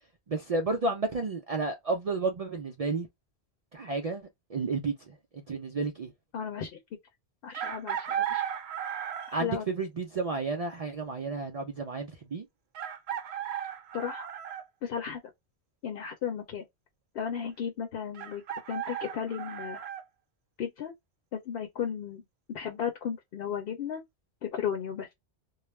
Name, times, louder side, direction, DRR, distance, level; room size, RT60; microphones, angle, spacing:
voice 1, 0.3-3.1 3.7-6.1 9.3-12.5, right 3 dB, 55° right, 0.4 m, -32 dB
voice 2, 6.3-6.8 7.4-8.5 9.4-9.6 13.9-14.3 14.8-15.2 15.8-16.6 17.1-18.4 18.7-19.8 20.6-20.9 21.3-24.0 24.4-25.1, left 8 dB, 65° left, 0.8 m, -34 dB
Chicken rooster, 7.5-9.5 11.2-11.3 12.7-14.7 18.1-20.0, right 9 dB, 75° right, 0.8 m, -35 dB
2.3 x 2.0 x 3.1 m
omnidirectional pair, 1.1 m